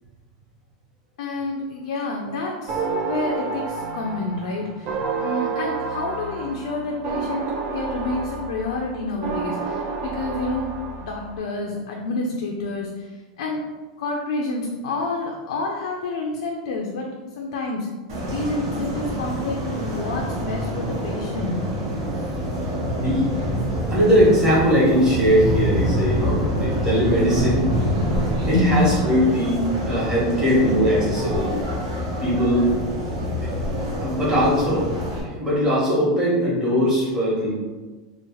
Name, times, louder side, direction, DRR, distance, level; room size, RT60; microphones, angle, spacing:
voice 1, 1.2-7.5 7.7-10.7 11.0-13.6 14.0-17.1 17.4-17.9 18.3-21.6 28.5-28.8, left 2 dB, 80° left, 0 dB, 0.4 m, -28 dB
sound 1, 2.7-11.4, right 4 dB, 35° right, 0.3 m, -29 dB
sound 2, 18.1-35.2, equal, 65° right, 0.9 m, -26 dB
voice 2, 22.9-23.3 23.9-27.6 28.5-31.5 32.2-32.7 34.0-34.9 35.2-37.5, equal, 15° right, -8 dB, 1.1 m, -20 dB
2.9 x 2.0 x 3.0 m, 1.2 s
supercardioid pair, 155°, 3 cm